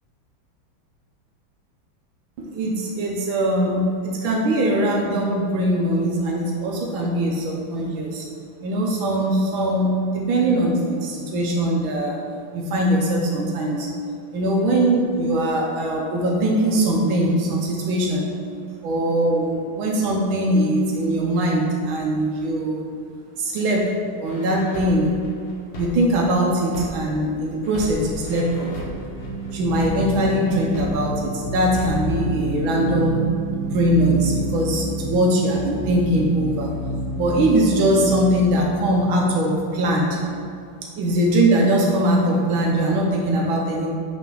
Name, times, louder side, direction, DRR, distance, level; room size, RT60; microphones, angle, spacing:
voice 1, 2.4-8.2 8.6-12.2 12.5-13.9 14.3-18.3 18.8-22.9 23.4-23.9 24.2-25.1 25.7-28.7 29.5-33.2 33.6-36.7 37.1-40.2 41.0-43.9, right 1 dB, 85° right, -1 dB, 1.6 m, -21 dB
sound 1, 24.3-27.3 27.6-31.3 31.6-32.2, left 2 dB, 50° left, 1.4 m, -36 dB
sound 2, 27.4-40.6, left 1 dB, 25° left, 0.6 m, -30 dB
6.8 x 5.9 x 3.8 m, 2.4 s
omnidirectional pair, 2.2 m